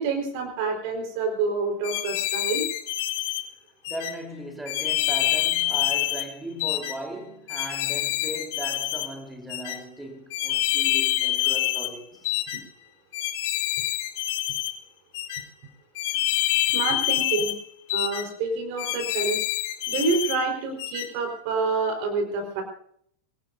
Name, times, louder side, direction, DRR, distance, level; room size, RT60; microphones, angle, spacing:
voice 1, 0.0-2.7 16.7-17.5 17.9-19.4 19.9-22.6, right 4 dB, 45° right, 4.4 m, -27 dB
sound 1, 1.8-3.4 3.8-4.1 4.7-6.3 6.6-7.0 7.5-9.1 9.5-9.8 10.3-11.9 12.2-12.6 13.1-14.7 15.1-15.4 16.0-17.6 17.9-18.2 18.8-20.4 20.8-21.1, left 14 dB, 50° left, 1.5 m, -26 dB
voice 2, 3.9-12.3, right 1 dB, 5° right, 3.9 m, -38 dB
24.5 x 18.0 x 2.7 m
figure-of-eight pair, 90°, 0 cm